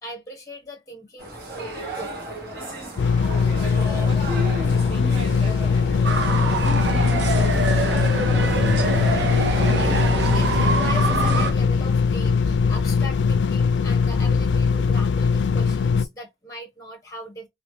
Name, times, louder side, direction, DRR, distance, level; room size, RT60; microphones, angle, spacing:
voice 1, 0.0-1.4 1.9-2.2 8.8-9.0 9.7-17.5, left 1 dB, 20° left, 0.8 m, -39 dB
sound 1, 1.2-10.8, right 1 dB, 60° right, 2.0 m, -35 dB
sound 2, 3.0-16.1, left 5 dB, 85° left, 0.3 m, -21 dB
voice 2, 3.2-8.4, right 1 dB, 35° right, 0.8 m, -38 dB
sound 3, 6.0-11.5, right 3 dB, 80° right, 0.7 m, -25 dB
3.0 x 2.8 x 3.2 m
head